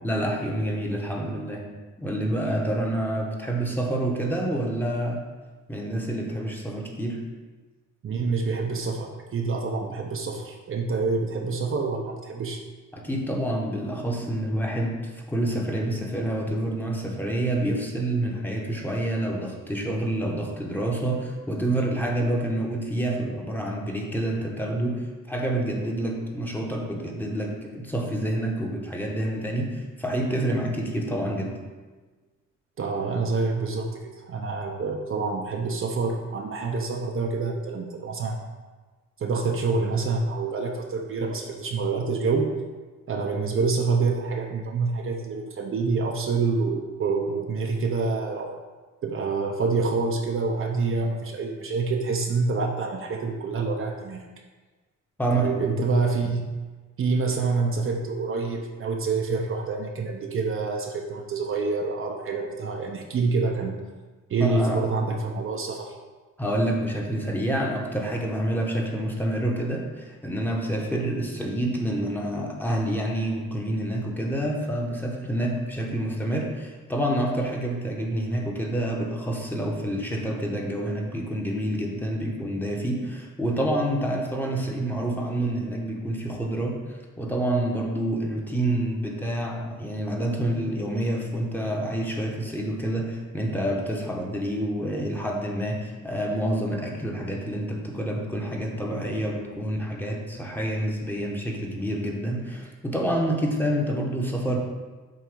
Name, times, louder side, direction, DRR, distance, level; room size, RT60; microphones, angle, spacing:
voice 1, 0.0-1.6 2.0-5.2 5.7-7.2 12.9-15.0 15.3-31.5 55.2-55.5 64.4-64.9 66.4-86.8 87.2-104.6, right 1 dB, 5° left, -1 dB, 1.1 m, -28 dB
voice 2, 8.0-12.6 32.8-38.4 39.2-42.5 43.1-48.6 49.0-54.2 55.3-56.4 57.0-63.8 64.3-65.9, right 4 dB, 45° right, 2 dB, 0.7 m, -27 dB
7.6 x 2.7 x 5.2 m, 1.3 s
cardioid pair, 90°, 30 cm